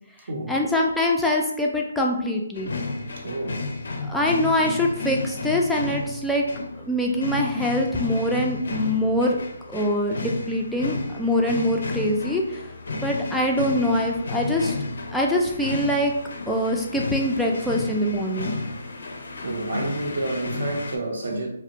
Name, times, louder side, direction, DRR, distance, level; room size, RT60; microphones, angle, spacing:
voice 1, 0.5-2.7 4.1-6.4 6.8-9.4 9.7-12.6 13.0-14.7 15.1-16.1 16.5-18.5, left 1 dB, ahead, 0.3 m, -24 dB
sound 1, 2.5-21.0, left 3 dB, 70° left, 0.4 m, -32 dB
voice 2, 3.2-3.6 19.4-21.5, right 2 dB, 70° right, 0.7 m, -29 dB
2.4 x 2.0 x 2.8 m
hypercardioid pair, 155°, 0 cm